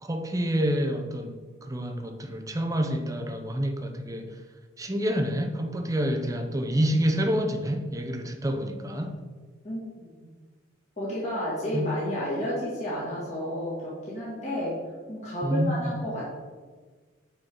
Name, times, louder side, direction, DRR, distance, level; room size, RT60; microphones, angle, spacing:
voice 1, 0.0-4.4 4.8-9.1 11.7-11.9 15.4-15.9, equal, 15° right, 5 dB, 0.6 m, -28 dB
voice 2, 9.6-10.1 11.0-14.8 15.1-16.3, equal, 35° left, -8 dB, 2.3 m, -31 dB
8.9 x 4.7 x 3.8 m, 1.4 s
head